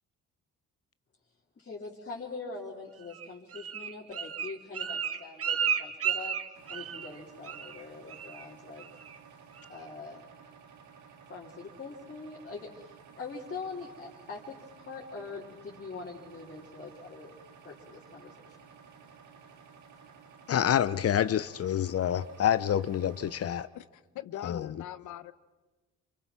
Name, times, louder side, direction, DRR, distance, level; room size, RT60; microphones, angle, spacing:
voice 1, 1.6-6.4 6.7-8.8 9.7-10.2 11.3-14.5 14.9-17.3 17.6-18.6, left 4 dB, 35° left, -5 dB, 3.2 m, -43 dB
Bird, 3.1-7.2 7.4-7.8 8.1-8.4 8.8-9.2 9.6-9.7, right 8 dB, 50° right, 1.3 m, -33 dB
sound 1, 6.5-23.7, right 6 dB, 70° right, 2.2 m, -54 dB
voice 2, 20.5-23.7 24.4-24.7, left 10 dB, 50° left, 15 dB, 0.7 m, -27 dB
voice 3, 24.1-25.3, left 12 dB, 80° left, 14 dB, 0.9 m, -41 dB
28.0 x 23.5 x 6.0 m, 1.2 s
cardioid pair, 90°, 30 cm